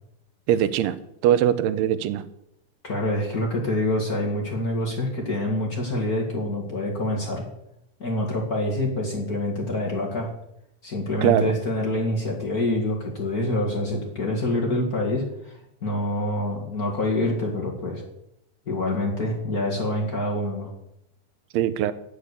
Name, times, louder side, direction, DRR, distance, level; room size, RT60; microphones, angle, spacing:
voice 1, 0.5-1.0 1.2-2.2 11.2-11.4 21.5-21.9, right 10 dB, 80° right, 13 dB, 2.7 m, -21 dB
voice 2, 2.8-7.5 8.0-10.3 10.8-18.0 18.6-20.7, left 1 dB, 40° left, -2 dB, 1.4 m, -26 dB
8.7 x 8.2 x 8.1 m, 0.80 s
omnidirectional pair, 4.6 m